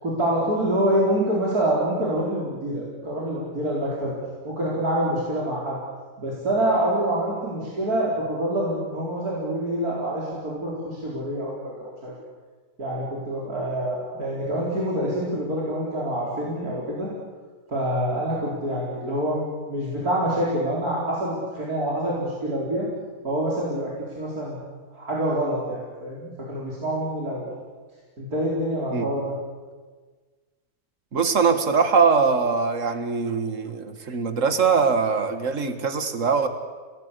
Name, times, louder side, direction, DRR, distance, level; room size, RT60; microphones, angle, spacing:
voice 1, 0.0-4.1 4.4-5.8 6.2-12.1 12.8-17.1 17.7-22.9 23.2-24.6 24.9-27.5 28.2-29.3, right 1 dB, 85° right, -5 dB, 5.0 m, -26 dB
voice 2, 31.1-36.5, right 5 dB, 60° right, 8 dB, 2.2 m, -22 dB
29.5 x 19.0 x 8.4 m, 1.4 s
omnidirectional pair, 1.5 m